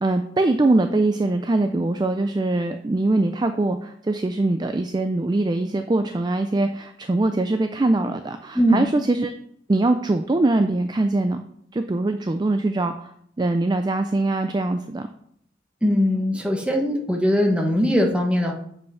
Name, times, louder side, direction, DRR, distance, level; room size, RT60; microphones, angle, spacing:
voice 1, 0.0-9.3 9.7-11.4 11.7-13.1 13.4-15.1, right 2 dB, 20° right, 8 dB, 0.3 m, -22 dB
voice 2, 15.8-18.5, equal, 5° right, 1 dB, 1.1 m, -20 dB
7.5 x 5.3 x 5.6 m, 0.69 s
head